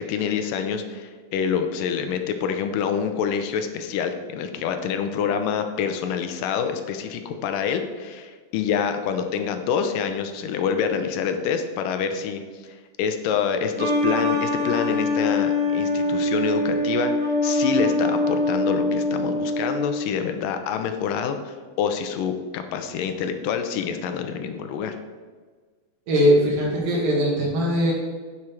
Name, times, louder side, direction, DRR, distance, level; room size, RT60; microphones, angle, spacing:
voice 1, 0.0-25.0, left 7 dB, 85° left, 7 dB, 2.3 m, -27 dB
sound 1, 13.8-20.1, left 2 dB, 50° right, 2.8 m, -23 dB
voice 2, 26.1-27.9, equal, 75° right, -3 dB, 3.8 m, -20 dB
10.5 x 6.1 x 4.7 m, 1.5 s
omnidirectional pair, 4.0 m